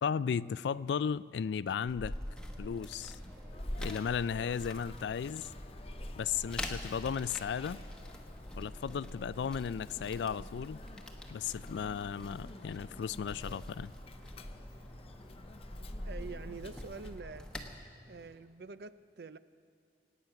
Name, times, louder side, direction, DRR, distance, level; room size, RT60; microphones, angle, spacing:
voice 1, 0.0-2.2 2.6-3.2 3.8-5.5 6.2-7.8 8.6-10.8 11.3-13.9, left 7 dB, 75° left, 19 dB, 0.3 m, -35 dB
sound 1, 1.9-17.8, left 1 dB, 5° left, 1.0 m, -45 dB
sound 2, 2.1-18.4, equal, 25° right, 3.6 m, -57 dB
Sneeze, 3.5-17.2, left 2 dB, 35° left, 0.6 m, -53 dB
voice 2, 16.0-17.5 18.1-19.4, right 4 dB, 60° right, 14 dB, 0.5 m, -46 dB
25.5 x 9.1 x 5.8 m, 2.1 s
head